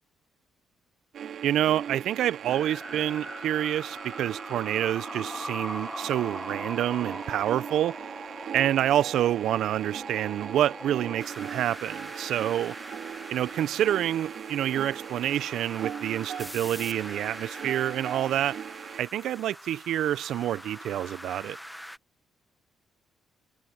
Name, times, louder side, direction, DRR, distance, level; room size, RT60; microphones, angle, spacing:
sound 1, 1.1-19.0, right 8 dB, 55° right, 2.2 m, -40 dB
voice 1, 1.4-8.0 8.5-12.7 13.3-18.6 19.0-21.6, right 11 dB, 70° right, 0.3 m, -27 dB
sound 2, 2.5-22.0, equal, ahead, 0.6 m, -42 dB
cardioid pair, 140°, 0 cm